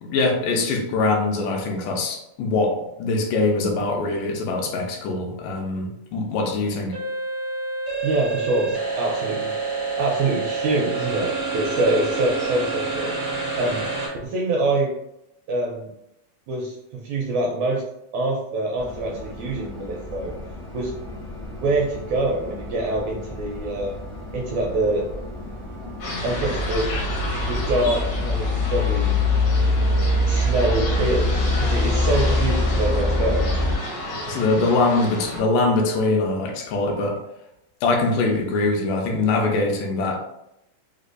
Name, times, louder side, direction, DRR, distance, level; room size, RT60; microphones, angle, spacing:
voice 1, 0.1-2.7 3.0-6.9 34.3-37.1 37.8-40.2, left 3 dB, 85° left, 1 dB, 2.1 m, -22 dB
sound 1, 6.9-14.1, right 3 dB, 65° right, 0.8 m, -27 dB
voice 2, 8.0-9.5 10.0-13.1 13.6-13.8 14.2-14.9 15.5-15.9 16.5-17.8 18.1-20.3 20.7-20.9 21.5-23.9 24.3-25.1 26.2-26.9 27.5-29.2 30.3-33.4, right 2 dB, 85° right, -2 dB, 1.7 m, -25 dB
sound 2, 18.8-33.7, left 2 dB, 50° left, 0.7 m, -25 dB
sound 3, 26.0-35.4, left 1 dB, 70° left, 1.4 m, -32 dB
5.2 x 2.1 x 2.4 m, 0.82 s
omnidirectional pair, 3.8 m